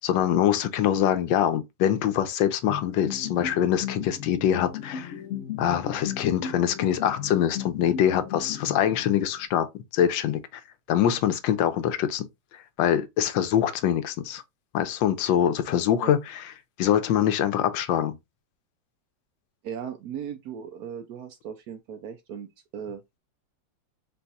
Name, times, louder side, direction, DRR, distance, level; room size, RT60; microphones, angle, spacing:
voice 1, 0.0-5.1 5.6-9.7 9.9-10.6 10.9-12.3 12.5-14.4 14.7-16.4 16.8-18.2, left 10 dB, 85° left, 1.4 m, -24 dB
sound 1, 2.7-9.4, left 8 dB, 70° left, 0.7 m, -36 dB
voice 2, 19.6-23.0, right 8 dB, 70° right, 0.9 m, -37 dB
4.0 x 2.3 x 3.9 m
omnidirectional pair, 2.0 m